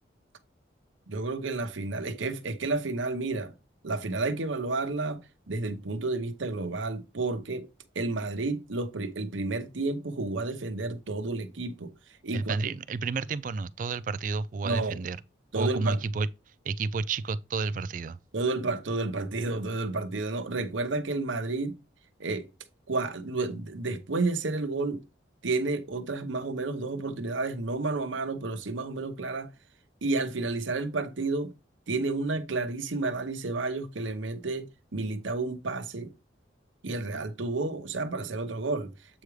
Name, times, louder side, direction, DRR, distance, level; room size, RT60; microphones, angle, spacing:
voice 1, 1.1-3.5 3.8-5.2 5.5-7.7 7.9-11.9 12.2-12.6 14.6-15.0 15.5-16.0 18.3-21.8 22.2-22.5 22.9-25.0 25.4-29.5 30.0-31.5 31.9-36.1 36.8-39.2, right 3 dB, 85° right, 0.9 m, -31 dB
voice 2, 12.3-15.2 15.5-16.3 16.7-18.2, right 4 dB, 45° right, 0.3 m, -30 dB
8.0 x 4.8 x 3.1 m
head